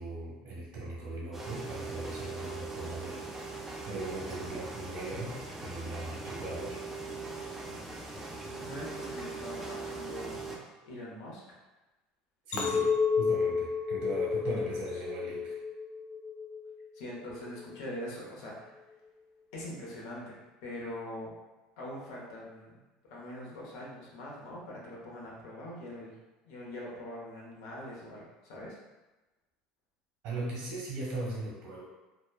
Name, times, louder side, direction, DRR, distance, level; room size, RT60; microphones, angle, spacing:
voice 1, 0.0-6.8 12.5-15.6 30.2-31.8, right 2 dB, 70° right, -3 dB, 1.1 m, -39 dB
sound 1, 1.3-10.6, right 3 dB, 10° right, 0.4 m, -41 dB
voice 2, 8.6-10.6 10.9-11.6 16.9-18.7 19.5-21.3 21.8-22.8 23.1-26.1 26.4-28.8, left 1 dB, 85° left, -4 dB, 0.8 m, -43 dB
Chink clink, 12.5-16.9 17.3-17.8, left 5 dB, 60° left, 0.4 m, -31 dB
2.9 x 2.1 x 2.2 m, 1.1 s
cardioid pair, 135°, 3 cm